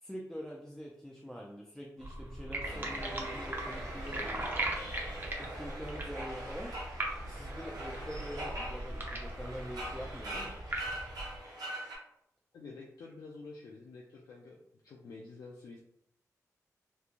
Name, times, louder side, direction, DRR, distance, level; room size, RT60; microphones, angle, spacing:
voice 1, 0.0-4.3 5.4-6.7 7.3-10.6, equal, 5° left, -2 dB, 0.4 m, -44 dB
sound 1, 2.0-11.4, right 1 dB, 35° right, 0.6 m, -39 dB
sound 2, 2.6-12.0, right 1 dB, 90° right, 0.9 m, -43 dB
voice 2, 12.5-14.6 14.8-15.8, left 3 dB, 80° left, -2 dB, 0.4 m, -49 dB
3.1 x 2.2 x 2.4 m, 0.74 s
cardioid pair, 70°, 6 cm